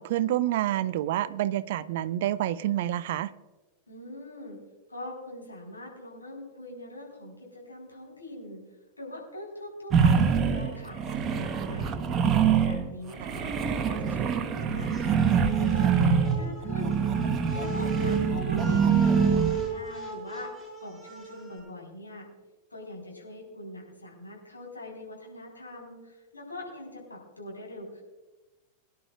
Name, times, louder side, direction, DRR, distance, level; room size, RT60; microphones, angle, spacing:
voice 1, 0.0-3.3 13.2-13.3, right 13 dB, 55° right, 0.4 m, -28 dB
voice 2, 3.9-4.6 4.9-8.6 9.0-12.1 12.6-13.6 13.8-17.0 17.6-22.3 22.7-28.0, left 1 dB, 80° left, 4.5 m, -42 dB
sound 1, 9.9-12.9 13.2-19.7, right 6 dB, 30° right, 1.0 m, -24 dB
sound 2, 14.9-21.6, right 2 dB, ahead, 5.1 m, -36 dB
23.5 x 10.5 x 2.4 m
figure-of-eight pair, 90°, 0 cm